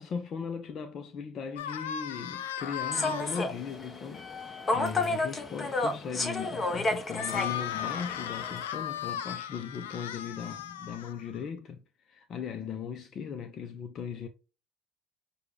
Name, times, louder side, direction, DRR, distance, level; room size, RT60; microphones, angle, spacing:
voice 1, 0.0-14.3, left 6 dB, 50° left, 0.6 m, -38 dB
sound 1, 1.6-3.4 7.1-11.4, left 10 dB, 90° left, 0.4 m, -36 dB
Human voice / Subway metro underground, 2.9-8.6, left 2 dB, 30° left, 1.1 m, -32 dB
6.6 x 2.3 x 3.3 m
hypercardioid pair, 70°, 0 cm